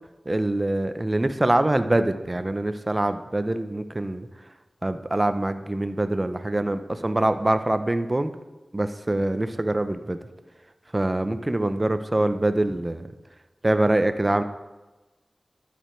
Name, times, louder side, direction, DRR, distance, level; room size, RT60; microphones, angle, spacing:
voice 1, 0.3-4.3 4.8-8.3 8.7-10.2 10.9-13.1 13.6-14.4, right 1 dB, 30° right, 10 dB, 0.6 m, -24 dB
12.0 x 5.2 x 4.4 m, 1.1 s
cardioid pair, 45°, 0 cm